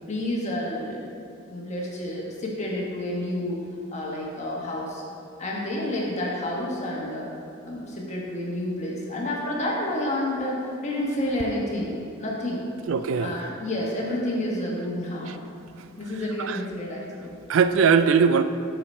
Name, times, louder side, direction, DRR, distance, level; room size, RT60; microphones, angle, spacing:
voice 1, 0.1-1.1 1.5-3.6 3.9-5.0 5.4-7.3 7.6-12.6 13.2-15.3 16.0-17.3, left 1 dB, 35° left, -3 dB, 1.2 m, -29 dB
voice 2, 12.9-13.4 16.4-16.6 17.5-18.4, right 6 dB, 65° right, 11 dB, 0.4 m, -20 dB
6.6 x 5.8 x 4.3 m, 2.4 s
head